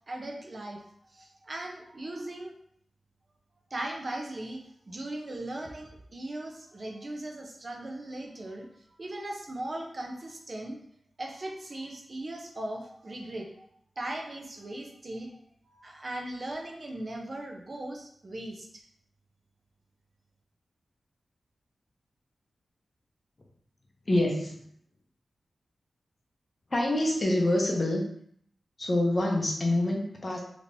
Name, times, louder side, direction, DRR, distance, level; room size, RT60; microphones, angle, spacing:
voice 1, 0.1-2.5 3.7-8.7 9.0-10.8 11.2-13.7 14.0-18.8, right 1 dB, 40° right, 1 dB, 0.6 m, -38 dB
voice 2, 24.1-24.6 26.7-28.0 28.8-30.4, left 1 dB, 35° left, 0 dB, 0.7 m, -26 dB
3.5 x 2.9 x 2.6 m, 0.65 s
wide cardioid pair, 120°, 0 cm